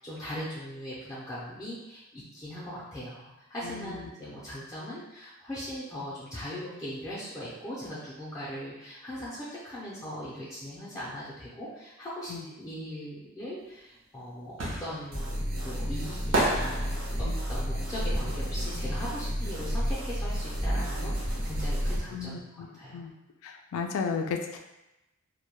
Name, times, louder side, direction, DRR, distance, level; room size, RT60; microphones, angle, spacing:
voice 1, 0.0-14.5 14.8-16.9 17.2-22.4 22.7-23.1, equal, 15° left, -10 dB, 0.4 m, -39 dB
voice 2, 3.6-4.1 12.3-12.4 17.2-17.3 22.1-23.1 23.4-24.6, left 5 dB, 85° left, 4 dB, 0.3 m, -34 dB
sound 1, 13.7-19.6 19.8-21.4 21.7-21.8, right 1 dB, 65° right, 0.6 m, -32 dB
sound 2, 15.1-22.0, equal, 90° right, 1.0 m, -31 dB
2.1 x 2.1 x 2.9 m, 0.95 s
head